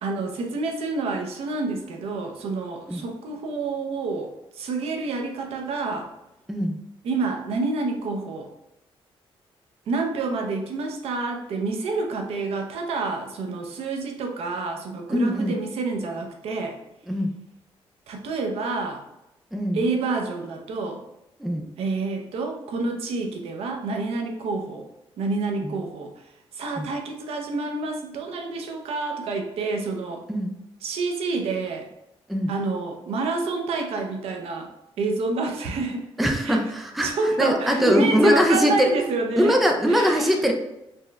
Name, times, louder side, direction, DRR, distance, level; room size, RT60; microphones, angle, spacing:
voice 1, 0.0-6.1 7.0-8.5 9.9-16.8 18.1-19.0 19.7-21.0 21.8-24.9 25.2-26.1 26.5-30.2 30.8-31.9 32.5-34.7 35.0-36.1 36.4-36.6 37.0-39.6 39.9-40.4, right 3 dB, 85° right, 3 dB, 0.6 m, -28 dB
voice 2, 6.5-6.8 15.1-15.6 17.1-17.3 19.5-19.8 21.4-21.7 25.6-25.8 26.8-26.9 30.3-30.5 32.3-32.5 36.2-38.9 39.4-40.5, equal, ahead, 2 dB, 0.4 m, -22 dB
4.2 x 3.2 x 2.3 m, 0.88 s
cardioid pair, 160°, 10 cm